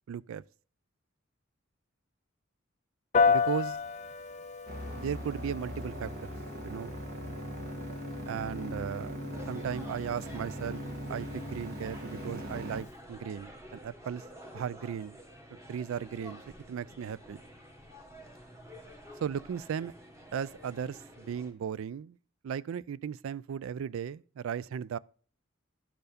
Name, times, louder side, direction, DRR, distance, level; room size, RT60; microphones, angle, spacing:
voice 1, 0.1-0.4 3.2-3.8 4.9-6.3 6.6-6.9 8.3-10.8 11.1-14.2 14.5-15.2 15.7-16.4 16.7-17.4 19.2-19.9 20.3-22.2 22.4-25.0, right 8 dB, 70° right, 0.3 m, -36 dB
Piano, 3.1-12.9, left 5 dB, 35° left, 0.6 m, -34 dB
sound 1, 4.7-12.8, equal, 50° right, 1.4 m, -40 dB
sound 2, 9.3-21.5, equal, 15° right, 1.3 m, -50 dB
12.0 x 4.6 x 5.0 m
head